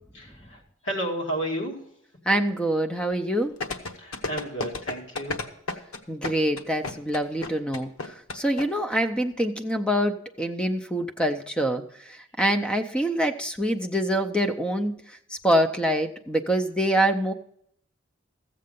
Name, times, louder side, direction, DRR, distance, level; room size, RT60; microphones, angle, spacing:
voice 1, 0.1-1.8 3.9-5.4, right 1 dB, 60° left, 0 dB, 2.3 m, -32 dB
voice 2, 2.3-3.5 6.1-17.3, right 1 dB, 5° left, 6 dB, 0.5 m, -25 dB
sound 1, 3.6-8.6 8.9-9.0, left 3 dB, 90° left, 1.0 m, -31 dB
14.5 x 7.6 x 5.3 m, 0.71 s
head